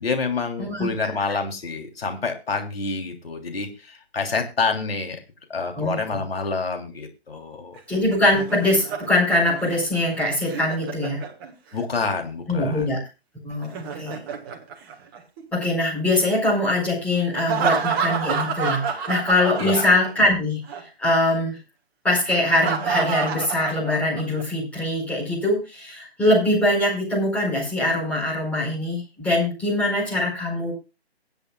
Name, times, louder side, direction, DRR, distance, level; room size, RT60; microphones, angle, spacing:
voice 1, 0.0-5.2 5.5-7.8 11.7-12.9 19.6-19.8, left 4 dB, 65° left, 3 dB, 3.3 m, -27 dB
voice 2, 0.6-0.9 5.8-6.0 7.9-11.2 12.5-13.0 13.4-14.2 15.5-20.6 21.0-21.6 22.0-30.7, left 1 dB, 5° left, -4 dB, 4.5 m, -22 dB
Laughter, 7.8-11.8 13.5-15.6 17.3-20.4 20.7-20.8 22.3-24.4, right 6 dB, 20° right, 1.4 m, -29 dB
24.0 x 8.2 x 2.3 m, 0.29 s
figure-of-eight pair, 145°, 32 cm